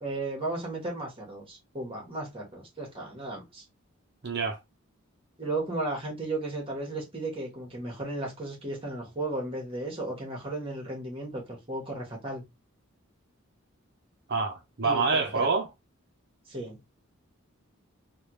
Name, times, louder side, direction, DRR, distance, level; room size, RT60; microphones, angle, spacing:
voice 1, 0.0-3.6 5.4-12.4 14.8-15.5 16.5-16.8, right 2 dB, 25° right, 1.3 m, -35 dB
voice 2, 4.2-4.6 14.3-15.7, right 4 dB, 50° right, 0.6 m, -26 dB
3.3 x 2.3 x 3.0 m
head